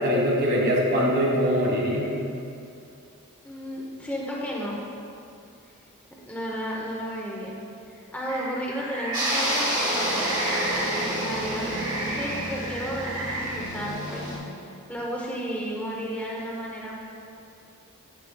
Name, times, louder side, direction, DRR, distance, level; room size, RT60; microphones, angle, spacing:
voice 1, 0.0-2.1, equal, 50° right, -3 dB, 1.5 m, -22 dB
voice 2, 3.4-4.8 6.2-7.6 7.9-10.4 10.7-10.8 11.2-14.4 14.9-16.9, equal, 5° left, -4 dB, 0.7 m, -33 dB
sound 1, 8.3-13.6, right 1 dB, 85° right, 1.4 m, -33 dB
sound 2, 9.1-14.4, equal, 20° right, 1.4 m, -29 dB
9.4 x 8.2 x 2.3 m, 2.6 s
head